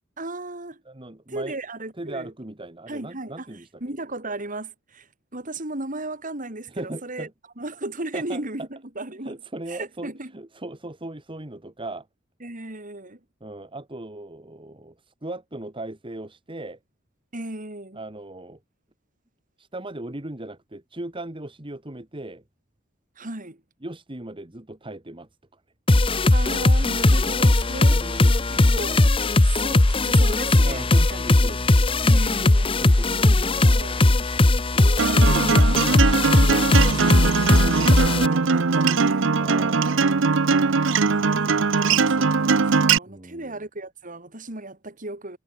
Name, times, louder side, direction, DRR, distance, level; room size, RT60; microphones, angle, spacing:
voice 1, 0.2-0.8 1.3-2.3 2.9-7.3 7.6-9.4 9.7-10.3 12.4-13.2 17.3-18.0 23.2-23.6 26.3-28.2 28.7-29.0 29.4-31.3 32.0-39.3 41.1-45.4, right 2 dB, 40° right, 3.9 m, -36 dB
voice 2, 0.9-1.6 2.0-3.7 6.7-7.3 8.1-8.7 9.2-12.1 13.4-16.8 18.0-18.6 19.6-22.4 23.8-25.6 27.9-28.9 30.6-31.9 32.8-33.3 34.0-34.3 39.4-40.2 43.1-43.7, right 2 dB, 25° right, 1.7 m, -38 dB
sound 1, 25.9-38.3, left 2 dB, 25° left, 0.8 m, -18 dB
Acoustic guitar, 35.0-43.0, right 4 dB, 65° right, 0.8 m, -21 dB
head